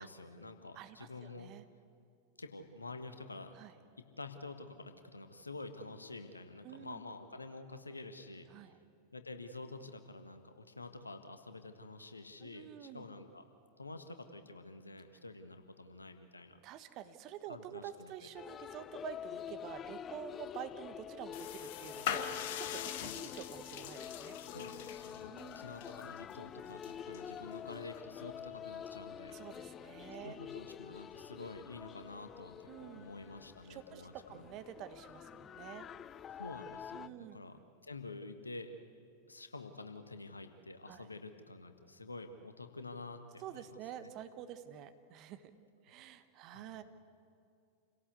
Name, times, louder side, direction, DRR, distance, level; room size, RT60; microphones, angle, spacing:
voice 1, 0.0-1.5 2.4-3.6 4.0-8.5 9.1-13.4 13.8-16.6 17.5-18.1 24.5-29.4 30.2-34.5 36.4-37.6 37.8-38.7 39.3-44.1 46.5-46.8, left 2 dB, 80° left, 8 dB, 1.6 m, -49 dB
voice 2, 0.7-1.6 3.5-3.7 6.6-7.0 8.5-8.8 12.4-13.0 16.6-24.4 25.3-25.7 29.3-30.4 32.7-33.0 33.7-35.9 36.9-37.4 40.9-41.1 43.4-45.5 45.8-46.8, right 10 dB, 40° right, 10 dB, 1.4 m, -48 dB
sound 1, 18.4-37.1, left 9 dB, 25° left, 0.5 m, -47 dB
sound 2, 21.3-28.0, left 10 dB, 50° left, 1.4 m, -43 dB
28.0 x 17.0 x 8.3 m, 2.5 s
figure-of-eight pair, 90°, 0 cm